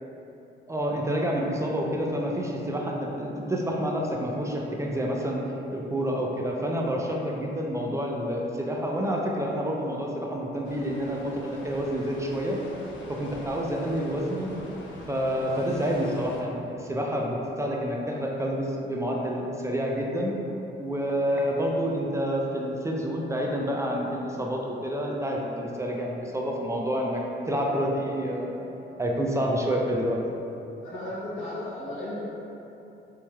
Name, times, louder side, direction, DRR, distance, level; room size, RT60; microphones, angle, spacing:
voice 1, 0.7-5.4 5.7-12.6 13.1-14.5 15.1-20.3 20.8-28.7 29.0-30.2, equal, 15° right, -1 dB, 0.4 m, -28 dB
sound 1, 10.6-16.4, left 2 dB, 70° left, 0.6 m, -44 dB
voice 2, 30.8-32.3, left 1 dB, 90° left, -8 dB, 1.1 m, -35 dB
4.0 x 3.1 x 2.3 m, 2.9 s
cardioid pair, 90°, 20 cm